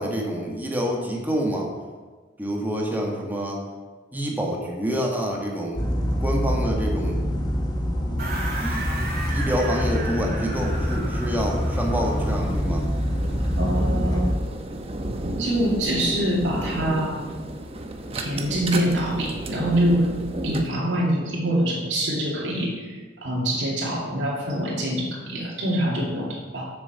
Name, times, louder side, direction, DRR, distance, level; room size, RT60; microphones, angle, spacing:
voice 1, 0.0-1.7 2.4-3.6 4.1-5.8 6.2-7.2 8.5-8.8 9.3-12.9, equal, 10° right, 0 dB, 1.6 m, -27 dB
sound 1, 5.7-14.3, equal, 25° left, 1.5 m, -25 dB
sound 2, 8.2-12.6, right 2 dB, 60° right, 2.5 m, -35 dB
sound 3, 10.5-20.6, right 1 dB, 35° right, 0.9 m, -33 dB
voice 2, 13.6-14.3 15.4-17.3 18.1-20.1 20.4-26.7, right 1 dB, 85° right, -4 dB, 2.4 m, -25 dB
7.4 x 7.1 x 6.9 m, 1.4 s
head